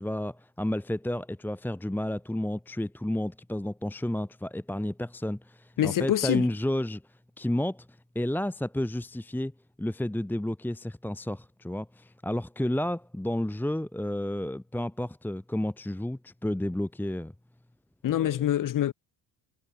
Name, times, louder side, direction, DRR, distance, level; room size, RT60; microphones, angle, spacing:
voice 1, 0.0-7.9 8.1-9.5 9.8-17.3 18.1-18.5, left 1 dB, 5° left, 1.2 m, -31 dB
voice 2, 5.8-6.5 18.0-18.9, left 11 dB, 45° left, 1.0 m, -25 dB
supercardioid pair, 80°, 46 cm